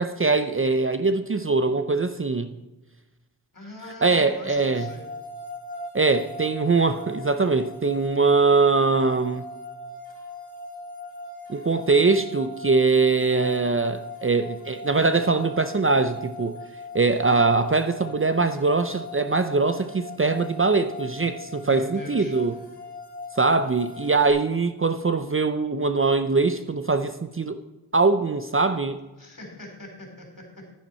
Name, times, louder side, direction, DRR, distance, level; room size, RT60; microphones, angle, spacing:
voice 1, 0.0-2.5 4.0-4.9 5.9-9.4 11.5-16.6 16.9-22.5 23.4-27.6 27.9-29.0, right 3 dB, 30° right, 9 dB, 0.6 m, -22 dB
voice 2, 3.5-5.1 21.5-22.4 29.2-30.6, left 2 dB, 50° left, 1 dB, 3.8 m, -41 dB
sound 1, 4.5-24.3, left 2 dB, 20° left, 3.4 m, -40 dB
10.5 x 9.7 x 4.3 m, 1.1 s
wide cardioid pair, 55°, 40 cm